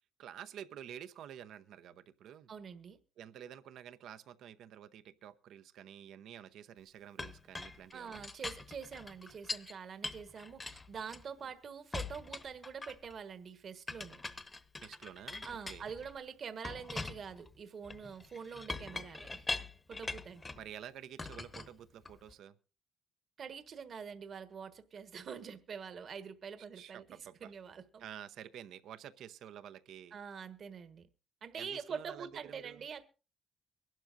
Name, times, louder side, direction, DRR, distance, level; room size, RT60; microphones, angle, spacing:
voice 1, 0.2-2.5 3.2-8.3 14.8-15.8 20.5-22.6 26.7-27.5 28.0-30.2 31.5-32.8, right 10 dB, 80° right, 0.8 m, -50 dB
voice 2, 2.5-3.0 7.9-14.2 15.4-19.5 19.9-20.4 23.4-28.0 30.1-31.1 31.4-33.0, right 6 dB, 55° right, 1.4 m, -45 dB
Chink clink, 7.2-9.7 10.0-11.5 11.9-13.2 13.9-16.2 16.6-20.7 21.2-22.3, left 3 dB, 25° left, 1.0 m, -43 dB
23.5 x 12.0 x 2.5 m
cardioid pair, 90°, 0 cm